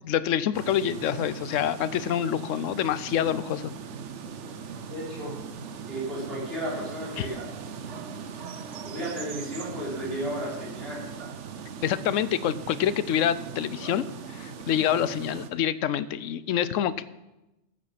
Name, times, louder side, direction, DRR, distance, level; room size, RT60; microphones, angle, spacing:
voice 1, 0.0-3.7 7.2-7.3 11.8-17.0, left 10 dB, 70° left, 16 dB, 1.0 m, -27 dB
sound 1, 0.5-15.5, right 6 dB, 65° right, 1.1 m, -40 dB
voice 2, 4.8-5.4 5.9-7.4 8.8-11.0, right 1 dB, 45° right, -6 dB, 5.5 m, -33 dB
14.0 x 8.7 x 5.9 m, 0.98 s
omnidirectional pair, 1.4 m